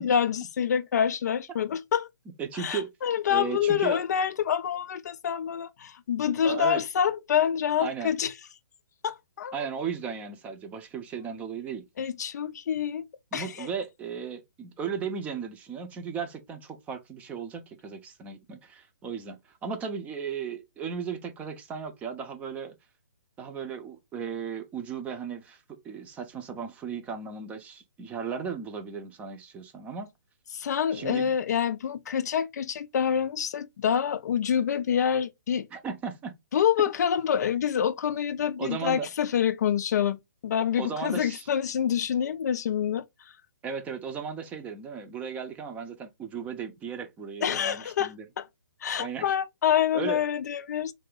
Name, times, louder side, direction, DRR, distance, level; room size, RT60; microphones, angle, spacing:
voice 1, 0.0-2.1 2.5-8.3 9.0-9.7 12.0-13.1 13.3-13.7 30.5-35.7 36.5-43.0 47.4-48.5 48.8-50.9, left 8 dB, 55° left, 0.4 m, -27 dB
voice 2, 2.4-2.9 3.3-4.0 6.4-6.8 7.8-8.1 9.5-11.8 13.3-22.8 23.4-30.1 30.9-31.3 35.7-36.3 38.6-39.1 40.8-41.5 43.6-48.3 49.0-49.3 49.9-50.2, right 6 dB, 15° right, 0.6 m, -36 dB
3.3 x 2.7 x 3.8 m
hypercardioid pair, 150°, 11 cm